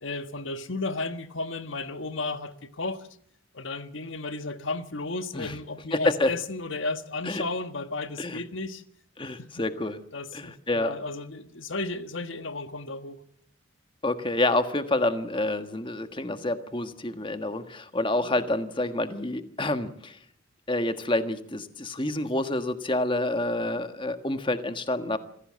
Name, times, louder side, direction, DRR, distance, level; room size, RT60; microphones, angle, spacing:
voice 1, 0.0-3.1 3.5-8.8 10.1-13.2 18.2-18.4, left 3 dB, 75° left, 1.5 m, -34 dB
voice 2, 5.9-6.3 7.2-7.4 8.2-8.4 9.2-10.0 10.3-10.9 14.0-20.2 20.7-25.2, left 2 dB, 25° left, 1.5 m, -28 dB
27.0 x 16.0 x 7.6 m
head